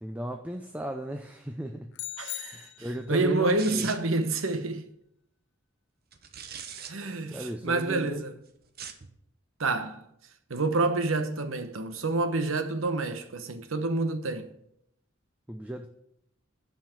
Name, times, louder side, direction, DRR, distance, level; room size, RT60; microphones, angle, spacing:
voice 1, 0.0-1.9 2.4-3.9 7.3-8.2 15.5-15.9, equal, 5° right, 0.5 m, -36 dB
sound 1, 1.9-3.3, left 16 dB, 60° left, 0.4 m, -40 dB
voice 2, 2.2-4.8 6.9-8.3 9.6-10.0 10.5-14.5, right 3 dB, 85° right, 0.9 m, -28 dB
sound 2, 3.6-4.2 6.1-6.9 8.6-9.1, right 7 dB, 50° right, 0.8 m, -41 dB
7.2 x 5.7 x 7.5 m
head